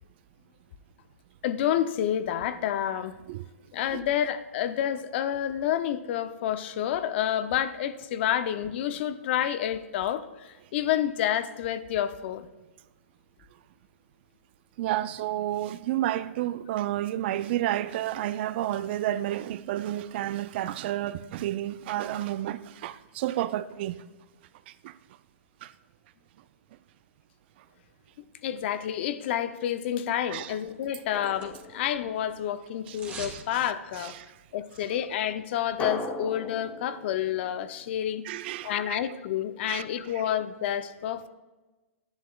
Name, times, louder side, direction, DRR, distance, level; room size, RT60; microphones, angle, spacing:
voice 1, 1.4-3.2 3.7-12.5 28.4-34.1 34.5-38.2 38.6-41.3, left 10 dB, 50° left, 0.5 m, -29 dB
voice 2, 14.8-24.0 24.8-24.9 25.6-25.7 30.3-30.5 32.9-33.0 33.3-33.4 34.0-34.3 38.2-39.0 39.7-39.9, right 13 dB, 50° right, 0.3 m, -31 dB
sound 1, 30.7-31.9 32.2-33.4 33.7-33.8, right 4 dB, 20° right, 1.5 m, -44 dB
Drum, 31.1-32.7 35.8-38.5, left 2 dB, 15° left, 0.8 m, -39 dB
11.5 x 9.4 x 2.3 m
hypercardioid pair, 130°, 8 cm